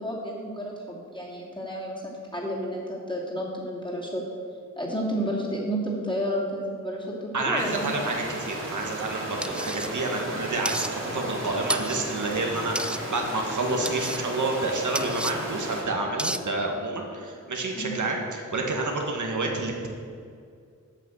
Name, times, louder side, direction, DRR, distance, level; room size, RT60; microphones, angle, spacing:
voice 1, 0.0-4.2 4.8-7.8 17.7-18.0, equal, 15° left, -4 dB, 2.7 m, -31 dB
voice 2, 7.3-19.9, right 2 dB, 75° right, 1 dB, 1.5 m, -29 dB
sound 1, 7.6-15.8, right 1 dB, 45° right, 2.7 m, -34 dB
sound 2, 9.4-9.9 10.7-10.9 11.7-12.0 12.8-13.0 13.9-14.2 15.0-15.3 16.2-16.4, right 1 dB, 5° right, 0.3 m, -31 dB
8.4 x 5.9 x 8.2 m, 2.2 s
wide cardioid pair, 80°, 30 cm